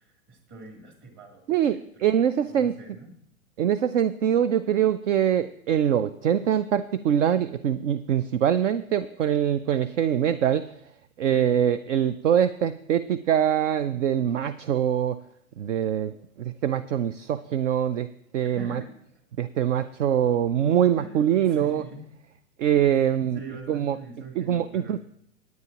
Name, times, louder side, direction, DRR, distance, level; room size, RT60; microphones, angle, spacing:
voice 1, 0.0-3.1 11.3-11.7 18.4-18.9 21.0-22.0 22.6-25.0, right 3 dB, 30° right, 1 dB, 3.3 m, -43 dB
voice 2, 1.5-2.7 3.6-10.7 11.2-15.2 15.6-18.8 19.4-21.8 22.6-23.4 23.7-24.0 24.4-25.0, right 9 dB, 60° right, 14 dB, 0.6 m, -24 dB
18.0 x 9.4 x 2.9 m, 0.66 s
hypercardioid pair, 135°, 42 cm